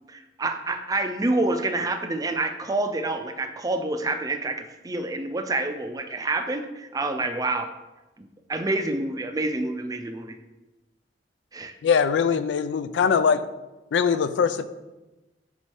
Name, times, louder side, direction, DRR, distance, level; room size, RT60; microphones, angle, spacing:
voice 1, 0.1-7.7 8.2-10.4 11.5-11.7, right 2 dB, 20° right, 7 dB, 0.4 m, -28 dB
voice 2, 11.8-13.4 13.9-14.6, left 6 dB, 85° left, 12 dB, 0.3 m, -22 dB
5.4 x 4.6 x 4.4 m, 1.1 s
head